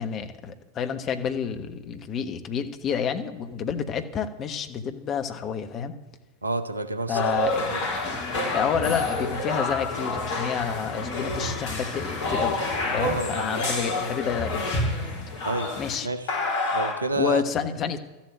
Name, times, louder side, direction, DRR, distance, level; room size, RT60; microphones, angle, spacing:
voice 1, 0.0-5.9 7.1-7.8 8.3-12.6 12.9-14.9 15.8-16.1 17.2-18.0, left 7 dB, 30° left, 8 dB, 1.3 m, -29 dB
voice 2, 6.4-7.3 7.7-7.8 13.0-13.6 15.4-15.7 16.0-16.3 16.7-17.7, right 2 dB, 80° right, 10 dB, 1.0 m, -29 dB
sound 1, 7.1-15.9 16.3-16.9, left 2 dB, 50° left, 4.3 m, -28 dB
13.5 x 7.4 x 9.0 m, 1.1 s
figure-of-eight pair, 90°, 0 cm